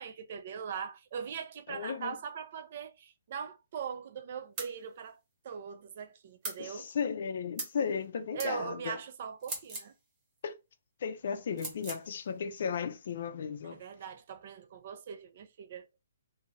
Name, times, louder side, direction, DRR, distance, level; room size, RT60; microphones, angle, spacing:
voice 1, 0.0-5.2 5.4-6.9 8.3-9.9 13.6-15.9, right 7 dB, 40° right, 0.5 m, -41 dB
voice 2, 1.7-2.2 6.6-9.0 10.4-10.5 11.0-13.8, left 6 dB, 50° left, 0.5 m, -35 dB
sound 1, 4.6-4.8 6.4-6.6 7.6-7.8 8.4-8.5 9.4-9.9 11.6-12.0, right 2 dB, 20° right, 1.0 m, -39 dB
2.7 x 2.3 x 3.1 m
hypercardioid pair, 165°, 0 cm